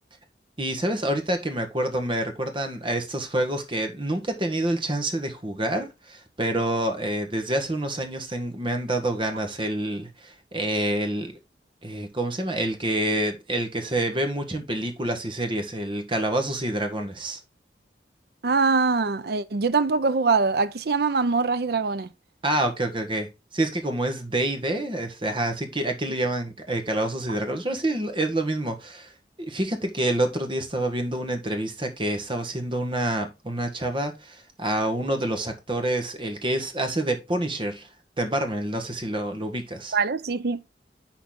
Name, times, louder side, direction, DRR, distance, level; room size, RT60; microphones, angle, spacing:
voice 1, 0.6-11.4 11.8-17.4 22.4-23.3 23.5-29.1 29.4-37.9 38.2-40.0, right 1 dB, 30° right, 1.4 m, -27 dB
voice 2, 18.4-22.1 39.9-40.6, right 4 dB, 60° right, 0.6 m, -23 dB
10.5 x 4.1 x 3.8 m
head